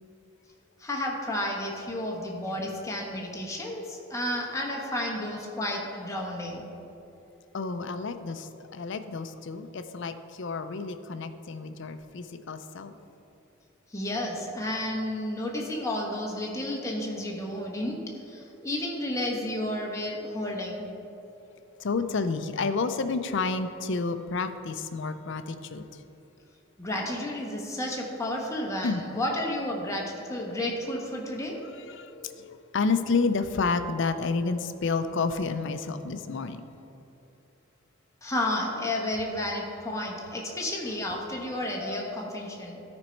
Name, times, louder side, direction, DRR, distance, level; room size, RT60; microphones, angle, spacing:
voice 1, 0.8-6.7 13.9-20.9 26.8-31.6 38.2-42.8, left 1 dB, 15° left, -1 dB, 1.1 m, -32 dB
voice 2, 7.5-12.9 21.8-25.8 28.8-29.0 31.9-36.6, left 4 dB, 60° left, 10 dB, 0.5 m, -30 dB
13.0 x 5.2 x 4.5 m, 2.8 s
head